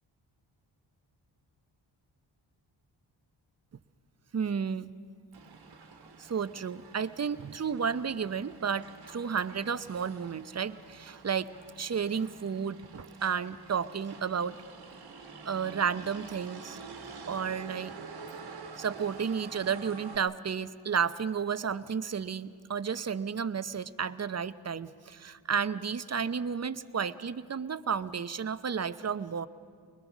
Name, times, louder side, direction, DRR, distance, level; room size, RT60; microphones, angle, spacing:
voice 1, 4.3-4.9 6.2-14.6 15.4-16.8 17.3-17.9 18.8-29.5, right 6 dB, 35° right, 14 dB, 0.7 m, -32 dB
Motor vehicle (road), 5.3-20.2, right 4 dB, 50° right, 1.7 m, -48 dB
22.0 x 21.0 x 6.1 m, 2.2 s
supercardioid pair, 45°, 48 cm